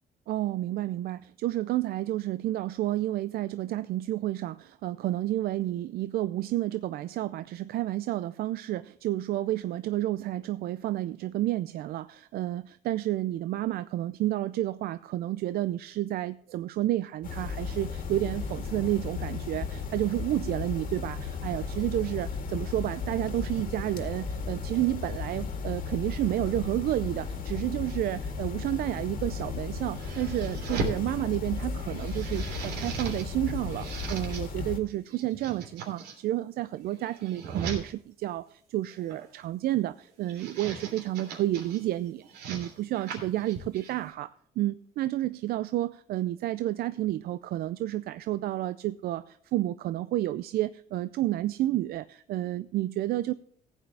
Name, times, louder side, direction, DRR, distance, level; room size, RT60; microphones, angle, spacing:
voice 1, 0.3-53.3, right 14 dB, 65° right, 14 dB, 0.4 m, -30 dB
sound 1, 17.2-34.8, left 5 dB, 55° left, 2.1 m, -35 dB
sound 2, 28.8-31.0 31.5-33.3 33.6-34.4 35.0-36.1 36.8-37.8 38.9-39.3 40.1-41.8 42.2-44.1, right 4 dB, 80° right, 3.2 m, -39 dB
15.5 x 8.8 x 3.4 m, 0.64 s
cardioid pair, 110°, 17 cm